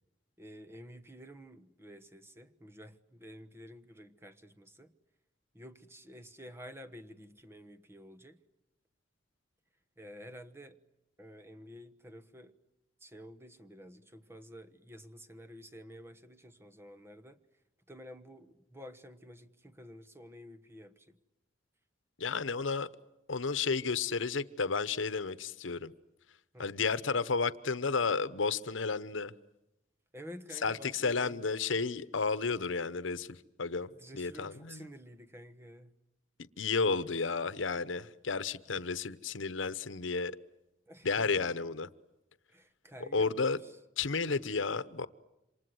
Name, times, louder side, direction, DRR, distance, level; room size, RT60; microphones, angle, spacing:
voice 1, 0.4-4.9 5.5-8.4 10.0-10.8 11.2-12.6 13.0-17.4 17.9-21.2 26.5-26.7 30.1-31.5 33.9-36.0 40.9-41.5 42.5-43.3 43.6-43.8 44.3-44.4, equal, 15° right, 1.1 m, -51 dB
voice 2, 22.2-22.9 23.3-25.9 26.6-29.3 30.6-34.9 36.6-40.3 41.0-41.9 43.1-43.6 44.0-45.1, left 4 dB, 85° left, 1.0 m, -32 dB
28.0 x 26.5 x 7.8 m
head